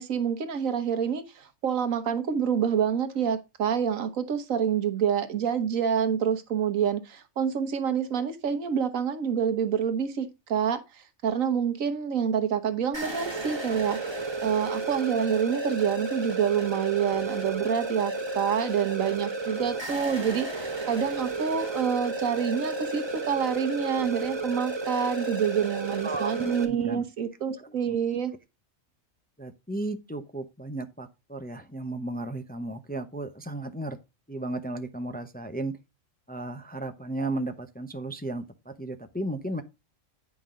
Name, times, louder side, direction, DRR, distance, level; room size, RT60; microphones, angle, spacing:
voice 1, 0.0-14.0 14.4-28.3, right 8 dB, 75° right, 1.5 m, -27 dB
sound 1, 12.9-26.6, right 2 dB, 20° right, 1.2 m, -32 dB
voice 2, 26.0-27.0 27.5-28.0 29.4-34.0 34.3-35.7 36.3-39.6, right 2 dB, 10° left, 0.4 m, -34 dB
9.4 x 5.4 x 3.6 m
omnidirectional pair, 1.4 m